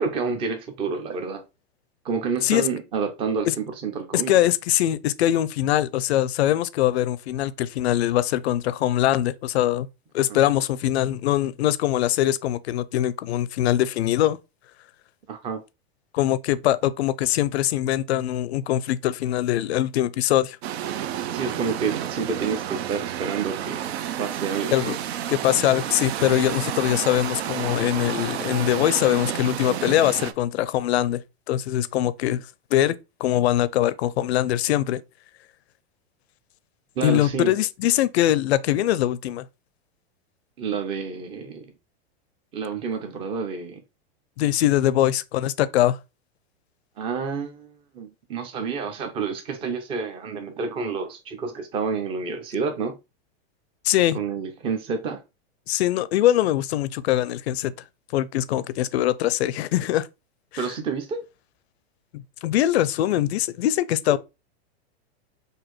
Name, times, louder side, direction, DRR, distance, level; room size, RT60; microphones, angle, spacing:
voice 1, 0.0-1.4 2.0-4.4 10.3-10.4 15.3-15.6 21.3-23.8 24.2-25.0 37.0-37.5 40.6-41.6 42.5-43.8 47.0-53.0 54.1-55.2 60.6-61.2 64.1-64.2, right 5 dB, 15° right, 0.5 m, -29 dB
voice 2, 4.1-9.9 10.1-14.4 16.1-20.6 24.7-25.0 25.3-31.2 31.5-32.5 32.7-33.0 33.2-35.0 37.0-39.4 44.4-46.0 53.8-54.2 55.7-57.7 58.1-60.1 60.5-60.6 62.1-64.2, left 13 dB, 90° left, 0.5 m, -22 dB
sound 1, 20.6-30.3, right 10 dB, 85° right, 0.5 m, -30 dB
4.1 x 2.6 x 3.0 m
supercardioid pair, 150°, 31 cm